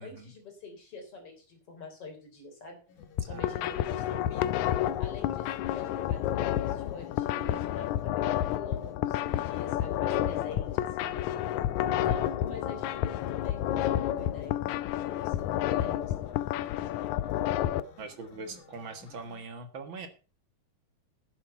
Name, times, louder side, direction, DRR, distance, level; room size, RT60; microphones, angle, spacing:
voice 1, 0.0-2.8 3.2-4.6 5.0-11.2 11.8-14.6 14.9-16.7, left 3 dB, 40° left, 3 dB, 4.2 m, -46 dB
sound 1, 2.9-19.5, left 5 dB, 60° left, 2.9 m, -55 dB
sound 2, 3.0-17.8, left 12 dB, 80° left, 1.7 m, -30 dB
voice 2, 18.0-20.1, right 4 dB, 50° right, 7 dB, 1.5 m, -42 dB
11.5 x 8.8 x 5.7 m, 0.35 s
omnidirectional pair, 4.1 m